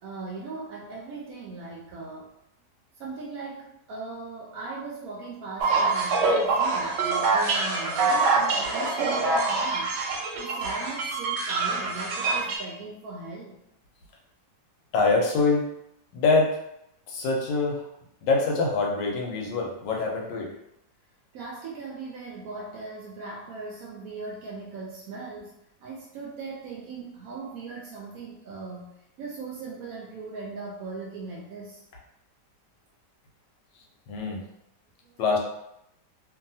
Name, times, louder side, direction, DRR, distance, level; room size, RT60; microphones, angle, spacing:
voice 1, 0.0-2.3 3.0-9.9 10.4-13.6 21.3-31.8 35.0-35.2, right 3 dB, 70° right, -2 dB, 0.8 m, -39 dB
sound 1, 5.6-12.6, right 3 dB, 90° right, 1.3 m, -25 dB
voice 2, 14.9-15.7 16.1-16.5 17.1-17.8 18.2-20.5 34.1-34.4 35.2-35.4, left 3 dB, 85° left, 0 dB, 1.3 m, -24 dB
2.8 x 2.6 x 2.6 m, 0.81 s
omnidirectional pair, 1.9 m